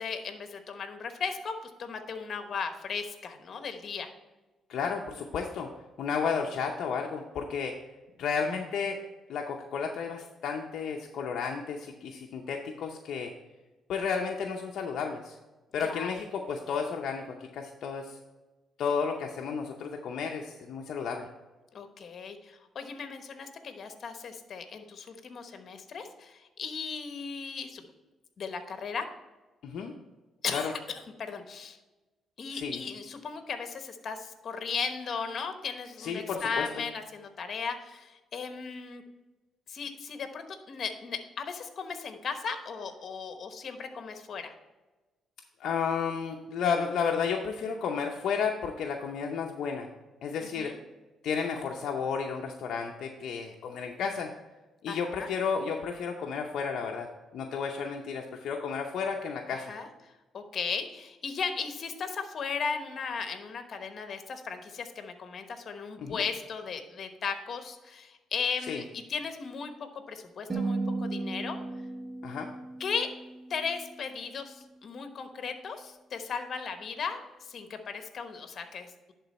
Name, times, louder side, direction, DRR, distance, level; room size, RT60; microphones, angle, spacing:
voice 1, 0.0-4.1 15.8-16.1 21.7-27.9 28.4-29.1 30.4-31.8 32.4-39.0 39.7-44.5 50.4-50.8 54.9-55.3 59.5-59.9 60.3-71.6 72.8-73.1 73.5-79.1, left 5 dB, 55° left, 7 dB, 1.0 m, -36 dB
voice 2, 4.7-5.7 6.0-7.7 8.2-9.0 9.3-13.3 13.9-15.4 15.7-18.2 18.8-21.3 29.6-29.9 30.5-30.6 32.5-32.8 36.0-36.8 45.6-49.9 50.2-50.8 51.2-54.3 54.8-57.1 57.3-59.7 66.0-66.2 68.7-68.8 72.2-72.5, left 6 dB, 70° left, 1 dB, 0.7 m, -32 dB
sound 1, 70.5-74.8, right 3 dB, 25° right, 1.3 m, -36 dB
11.0 x 3.9 x 4.2 m, 1.1 s
cardioid pair, 90°, 0 cm